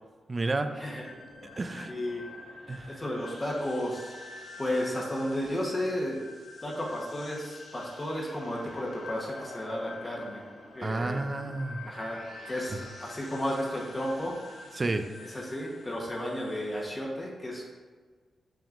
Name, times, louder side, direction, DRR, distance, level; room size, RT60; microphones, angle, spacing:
voice 1, 0.3-0.8 1.6-1.9 2.7-3.0 10.8-11.8 14.8-15.1, right 2 dB, 30° right, 8 dB, 0.4 m, -31 dB
sound 1, 0.9-16.8, left 3 dB, 85° left, 1.5 m, -47 dB
voice 2, 1.9-2.2 2.9-6.2 6.6-10.4 10.7-11.2 11.8-14.4 15.2-17.6, left 1 dB, 20° left, -3 dB, 1.1 m, -33 dB
7.0 x 5.9 x 2.6 m, 1.4 s
wide cardioid pair, 135°, 0 cm